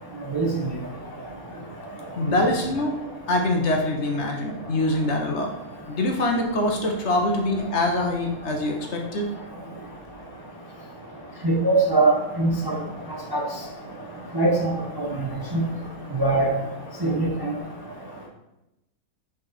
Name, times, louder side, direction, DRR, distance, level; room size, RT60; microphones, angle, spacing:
voice 1, 2.2-5.5 5.9-9.3 13.0-13.1, left 1 dB, 55° left, 2 dB, 1.1 m, -24 dB
voice 2, 11.4-12.7 13.3-13.4 14.3-14.7 15.0-15.1 15.5-15.6 16.2-16.5 17.0-17.5, right 2 dB, 25° right, -1 dB, 0.5 m, -21 dB
6.3 x 4.1 x 4.2 m, 0.93 s
omnidirectional pair, 1.5 m